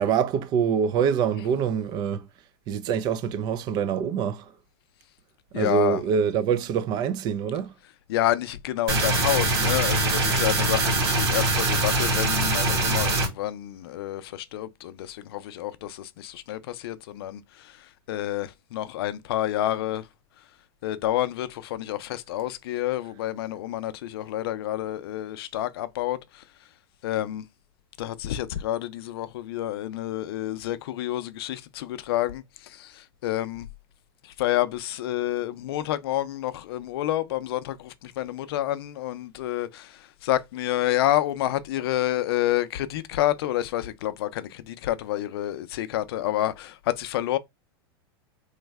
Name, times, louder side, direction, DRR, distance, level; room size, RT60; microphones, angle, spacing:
voice 1, 0.0-2.3 2.7-4.5 5.5-7.7, right 7 dB, 35° right, 0.4 m, -25 dB
voice 2, 5.5-6.0 8.1-17.4 18.1-20.0 20.8-26.2 27.0-27.4 28.0-32.4 32.7-33.7 34.4-39.9 40.2-47.4, left 13 dB, 75° left, 0.4 m, -28 dB
sound 1, 8.9-13.3, right 2 dB, 85° right, 1.9 m, -23 dB
3.1 x 2.1 x 3.3 m
supercardioid pair, 145°, 13 cm